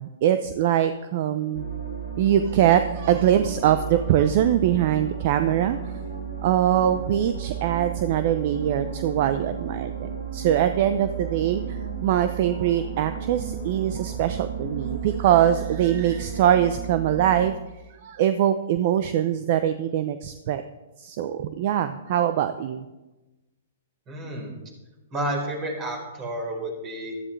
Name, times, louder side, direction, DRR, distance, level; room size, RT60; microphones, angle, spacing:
voice 1, 0.0-1.7 2.2-6.0 6.4-17.6 18.0-20.6 21.0-22.9, right 10 dB, 50° right, 10 dB, 0.6 m, -23 dB
sound 1, 1.5-17.4, right 7 dB, 80° right, 3.0 m, -33 dB
voice 2, 24.1-24.5 25.1-27.1, right 1 dB, 30° right, 1 dB, 4.1 m, -30 dB
14.5 x 12.5 x 3.3 m, 1.1 s
hypercardioid pair, 130°, 0 cm